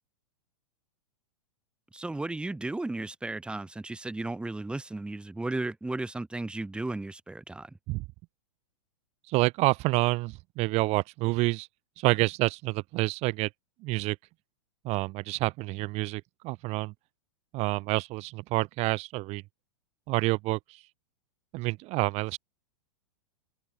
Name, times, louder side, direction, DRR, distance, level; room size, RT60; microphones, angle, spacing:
voice 1, 1.9-7.7, right 2 dB, 5° right, 2.4 m, -34 dB
voice 2, 9.3-11.7 12.0-13.5 13.8-14.2 14.8-16.9 17.5-19.4 20.1-20.6 21.5-22.4, right 22 dB, 40° right, 2.2 m, -28 dB
hypercardioid pair, 110°, 16 cm